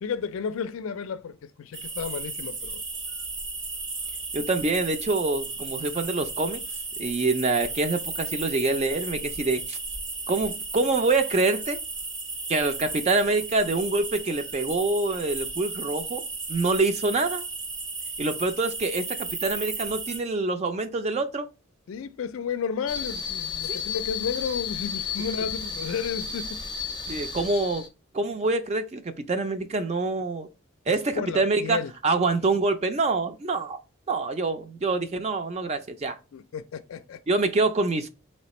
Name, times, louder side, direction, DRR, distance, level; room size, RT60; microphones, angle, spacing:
voice 1, 0.0-2.8 21.9-26.6 27.1-27.2 30.9-31.9 36.3-37.2, left 6 dB, 85° left, 0.4 m, -32 dB
sound 1, 1.7-20.2, right 3 dB, 60° right, 1.2 m, -34 dB
voice 2, 4.3-6.6 7.0-9.8 10.3-11.8 12.5-16.2 16.5-17.4 18.2-21.5 23.7-23.8 27.1-27.8 28.1-30.5 30.9-33.8 34.1-36.2 37.3-38.1, right 3 dB, 30° right, 0.4 m, -26 dB
sound 2, 22.9-27.9, left 7 dB, 20° left, 0.5 m, -33 dB
4.2 x 3.2 x 3.0 m
head